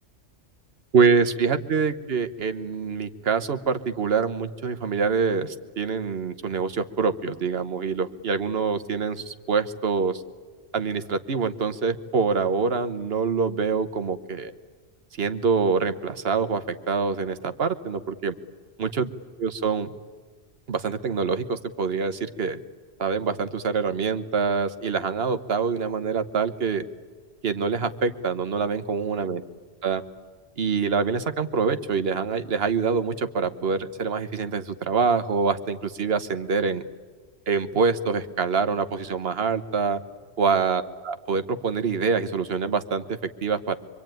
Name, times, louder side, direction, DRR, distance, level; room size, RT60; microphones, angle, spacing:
voice 1, 0.9-10.2 10.7-14.5 15.2-18.3 18.8-19.1 19.4-19.9 20.7-22.6 23.0-26.8 27.4-29.4 29.8-30.0 30.6-36.8 37.5-40.0 40.4-43.8, right 5 dB, 65° right, 10 dB, 1.3 m, -25 dB
25.0 x 24.0 x 9.2 m, 1.5 s
omnidirectional pair, 1.1 m